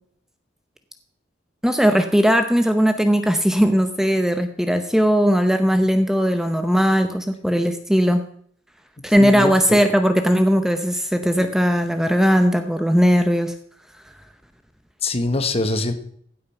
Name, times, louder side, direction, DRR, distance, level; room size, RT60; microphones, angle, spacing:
voice 1, 1.6-8.2 9.0-13.5, equal, 5° right, 8 dB, 0.8 m, -18 dB
voice 2, 9.2-9.8 15.0-15.9, left 2 dB, 35° left, 9 dB, 1.3 m, -23 dB
16.0 x 8.6 x 5.9 m, 0.62 s
head